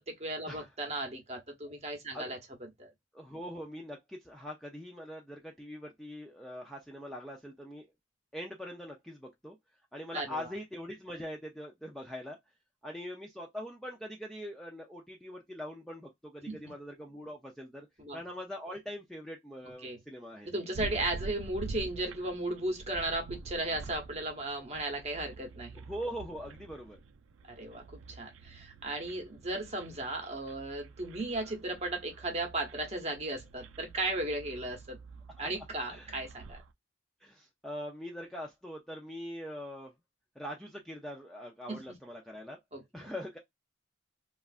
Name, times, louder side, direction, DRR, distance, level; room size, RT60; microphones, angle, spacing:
voice 1, 0.0-2.9 10.1-10.5 16.5-16.6 18.0-18.2 19.8-20.0 20.4-25.9 27.5-35.0 35.4-36.6 41.7-41.8 42.7-43.1, right 2 dB, 30° right, 0.9 m, -36 dB
voice 2, 3.1-7.9 8.3-9.6 9.9-12.4 12.8-17.9 18.1-20.5 25.8-27.0 35.4-35.5 35.9-36.2 37.2-39.9 40.4-42.6 42.9-43.4, equal, ahead, 0.4 m, -42 dB
sound 1, 20.7-36.7, right 3 dB, 80° right, 0.4 m, -47 dB
3.1 x 2.4 x 2.4 m
head